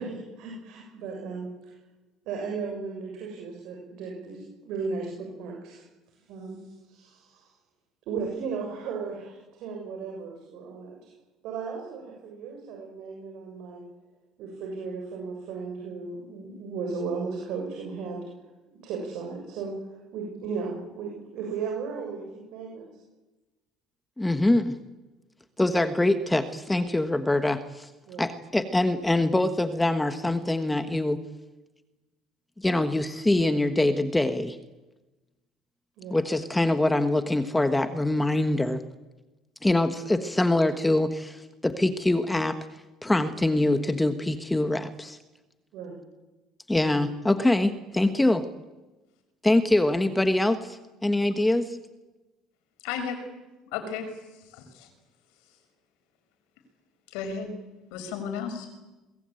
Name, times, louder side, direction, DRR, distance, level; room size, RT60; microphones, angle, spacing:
voice 1, 0.0-1.7 2.3-5.8 6.3-7.5 8.1-11.1 11.4-13.8 14.4-18.2 18.8-19.8 20.1-22.8 28.1-28.2 36.0-36.2 45.7-46.0 46.9-47.0, right 5 dB, 70° right, 0 dB, 7.1 m, -35 dB
voice 2, 24.2-24.8 25.6-27.9 28.2-31.2 32.6-34.6 36.1-38.8 39.6-42.7 43.0-45.2 46.7-48.5 49.4-51.8, left 1 dB, 10° left, 9 dB, 1.3 m, -24 dB
voice 3, 52.8-53.1 53.7-54.1 54.5-54.9 57.1-57.5 57.9-58.7, left 7 dB, 90° left, 7 dB, 6.2 m, -33 dB
29.5 x 22.0 x 9.1 m, 1.1 s
cardioid pair, 130°, 0 cm